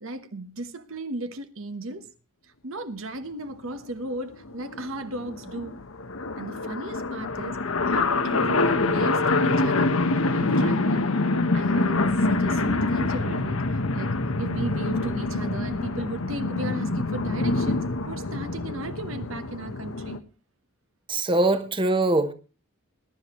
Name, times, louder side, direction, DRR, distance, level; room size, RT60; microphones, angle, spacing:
voice 1, 0.0-2.1 2.6-5.8 6.4-7.6 7.9-10.0 10.3-11.2 11.5-12.0 12.3-20.2, right 1 dB, 70° right, 1.2 m, -36 dB
sound 1, 3.7-3.8 4.1-4.2 4.3-20.2, left 2 dB, 75° left, 1.2 m, -25 dB
voice 2, 21.1-22.3, right 2 dB, 25° right, 1.1 m, -22 dB
21.0 x 11.0 x 3.1 m
head